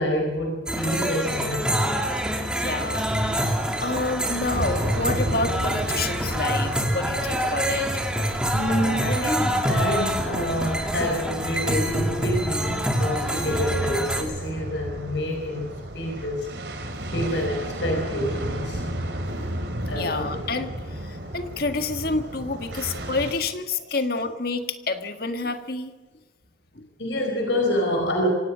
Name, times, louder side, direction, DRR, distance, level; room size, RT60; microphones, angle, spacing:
voice 1, 0.0-2.0 4.5-4.6 8.5-16.5 17.1-18.9 19.9-20.2 27.0-28.3, equal, 80° left, 1 dB, 4.7 m, -27 dB
sound 1, 0.7-14.2, equal, 5° right, 2.6 m, -26 dB
voice 2, 2.5-7.9 13.3-13.5 19.4-19.5 19.9-25.9 26.8-26.9, left 3 dB, 55° left, 7 dB, 1.7 m, -29 dB
sound 2, 4.5-23.3, right 1 dB, 65° right, 3.5 m, -33 dB
25.0 x 17.5 x 6.3 m, 1.2 s
head